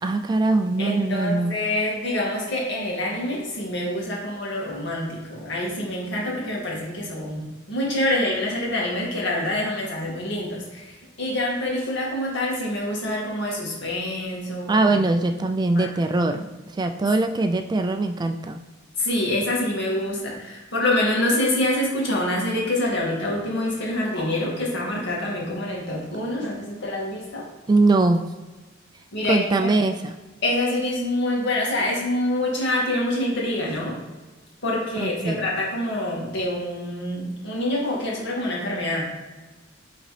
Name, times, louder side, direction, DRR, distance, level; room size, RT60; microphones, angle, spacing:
voice 1, 0.0-1.5 14.7-16.4 16.7-18.6 27.7-28.2 29.3-30.1 35.0-35.4, right 2 dB, 20° right, 6 dB, 0.3 m, -21 dB
voice 2, 0.8-15.0 15.7-15.9 19.0-27.4 29.1-29.7 30.4-33.9 34.6-39.0, left 1 dB, 60° left, -3 dB, 2.1 m, -26 dB
9.0 x 3.8 x 3.3 m, 1.2 s
head